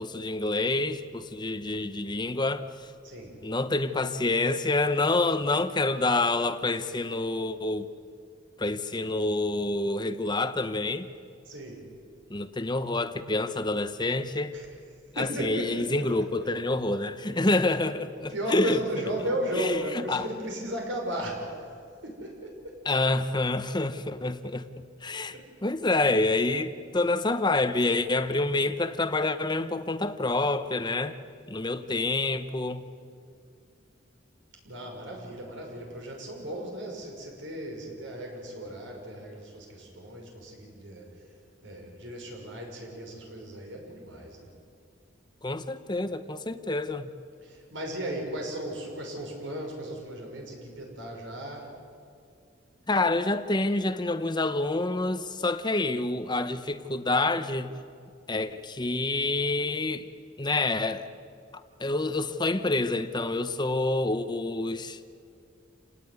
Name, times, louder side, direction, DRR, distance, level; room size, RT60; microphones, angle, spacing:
voice 1, 0.0-2.9 3.4-7.9 8.6-11.1 12.3-14.5 15.2-18.8 19.6-20.3 22.8-31.2 31.5-32.8 45.4-47.1 52.9-57.7 58.3-60.1 60.4-61.1 61.5-65.0, left 2 dB, 20° left, 1.0 m, -27 dB
voice 2, 3.0-3.5 11.4-11.8 14.5-14.7 15.2-16.0 18.3-21.6 22.0-22.9 25.3-25.5 34.6-41.2 41.6-44.5 47.4-51.7, right 1 dB, 70° right, 6.2 m, -36 dB
28.5 x 18.5 x 9.7 m
head